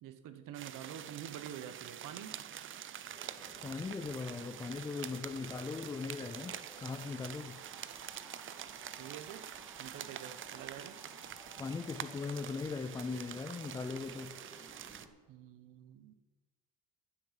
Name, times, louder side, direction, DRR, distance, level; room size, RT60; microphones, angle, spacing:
voice 1, 0.0-2.4 9.0-9.5 9.8-11.0 15.3-16.1, right 10 dB, 65° right, 1.2 m, -47 dB
sound 1, 0.5-15.1, right 10 dB, 35° right, 0.5 m, -46 dB
sound 2, 3.1-15.1, right 1 dB, 10° right, 1.6 m, -56 dB
voice 2, 3.6-7.6 11.6-14.4, left 4 dB, 10° left, 0.3 m, -39 dB
11.0 x 9.1 x 5.8 m
cardioid pair, 140°, 34 cm